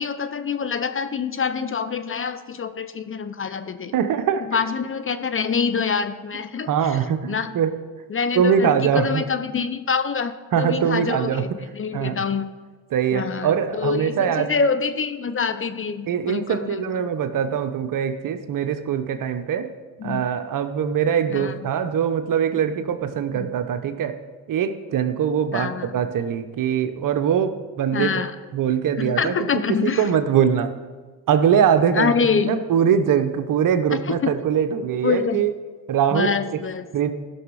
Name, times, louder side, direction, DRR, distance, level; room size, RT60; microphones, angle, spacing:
voice 1, 0.0-3.9 4.5-6.7 7.3-7.5 8.1-11.5 11.7-12.5 13.1-17.1 20.0-20.2 21.3-21.5 23.4-23.5 25.5-26.0 27.9-28.3 29.0-30.0 31.9-32.6 34.1-34.3 35.0-35.4 36.1-36.9, left 6 dB, 30° left, 11 dB, 0.7 m, -25 dB
voice 2, 3.9-4.6 6.6-7.8 8.3-9.3 10.5-11.6 11.9-12.2 12.9-14.6 16.1-19.7 20.0-24.2 24.5-28.2 28.5-30.7 31.3-35.5 35.9-36.7 36.9-37.2, right 8 dB, 50° right, 10 dB, 1.0 m, -22 dB
15.0 x 6.2 x 4.8 m, 1.4 s
supercardioid pair, 80°, 43 cm